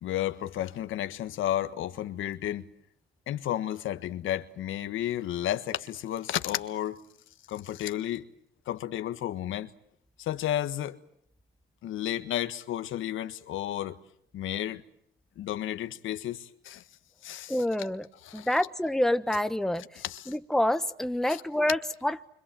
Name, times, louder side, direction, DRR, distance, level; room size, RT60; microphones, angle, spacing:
voice 1, 0.0-2.6 3.3-7.0 7.5-8.3 8.7-9.7 10.2-11.0 11.8-14.0 14.3-14.8 15.4-16.8 17.2-17.6 18.2-18.5 20.0-20.3 21.3-21.4, left 12 dB, 80° left, 1.6 m, -32 dB
voice 2, 17.5-18.1 18.3-22.3, left 1 dB, ahead, 1.2 m, -28 dB
29.5 x 25.5 x 7.7 m
cardioid pair, 90°, 20 cm